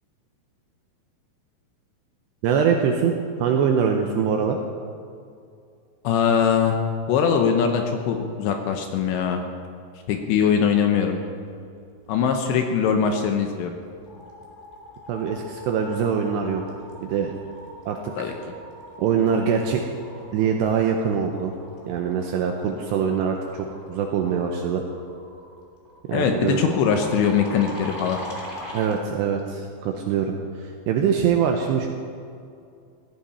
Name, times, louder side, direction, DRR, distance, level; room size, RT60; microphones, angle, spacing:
voice 1, 2.4-4.6 15.1-16.6 17.0-17.3 17.9-18.3 19.0-19.8 20.3-21.5 21.8-24.8 26.1-26.6 28.7-31.9, right 7 dB, 80° right, 3 dB, 2.5 m, -23 dB
voice 2, 6.0-6.8 7.1-9.4 10.1-11.2 12.1-13.7 18.2-18.3 26.1-28.2, left 7 dB, 75° left, 4 dB, 2.8 m, -21 dB
sound 1, 13.8-29.0, equal, 15° left, 1.7 m, -42 dB
17.0 x 14.5 x 4.3 m, 2.4 s
omnidirectional pair, 5.8 m